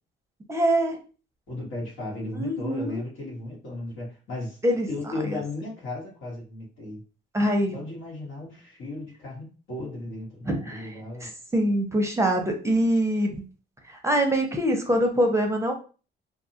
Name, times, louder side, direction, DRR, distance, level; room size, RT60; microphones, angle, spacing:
voice 1, 0.5-1.0 2.4-3.0 4.6-4.9 5.2-5.4 7.3-7.7 10.5-10.9 11.2-13.4 14.0-15.7, right 1 dB, 15° right, 3 dB, 0.6 m, -24 dB
voice 2, 1.5-4.6 4.9-7.0 7.7-11.3, left 2 dB, 80° left, -3 dB, 1.5 m, -35 dB
2.6 x 2.3 x 2.7 m, 0.36 s
cardioid pair, 90°, 20 cm